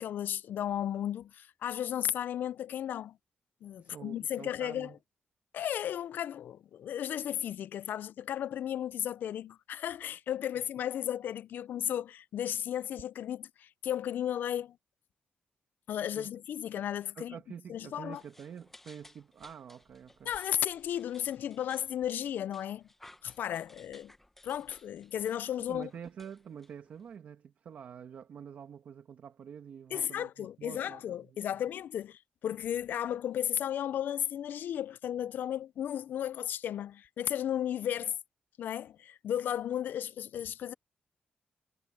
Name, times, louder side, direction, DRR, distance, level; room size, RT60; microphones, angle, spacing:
voice 1, 0.0-3.2 3.6-4.9 5.5-14.8 15.9-17.3 17.7-18.2 20.3-22.9 23.2-24.1 24.4-25.9 29.9-38.2 38.6-40.7, left 10 dB, 85° left, 0.4 m, -34 dB
voice 2, 3.8-5.0 16.2-16.3 17.2-20.3 25.7-31.6, right 8 dB, 65° right, 1.8 m, -47 dB
sound 1, 18.1-27.1, left 1 dB, 10° left, 1.0 m, -59 dB
wide cardioid pair, 170°, 3 cm